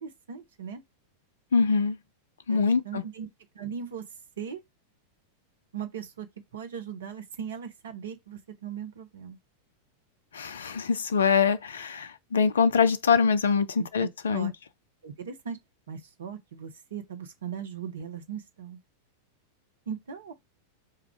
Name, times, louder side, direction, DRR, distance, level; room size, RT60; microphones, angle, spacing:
voice 1, 0.0-0.8 2.5-3.3 3.5-4.0 4.4-4.6 5.7-6.3 6.5-9.4 13.8-14.5 15.0-15.6 15.9-18.8 19.9-20.3, right 7 dB, 65° right, 0.8 m, -38 dB
voice 2, 1.5-2.0 2.5-3.0 10.3-14.5, left 5 dB, 65° left, 0.4 m, -24 dB
4.4 x 2.4 x 3.6 m
figure-of-eight pair, 90°, 0 cm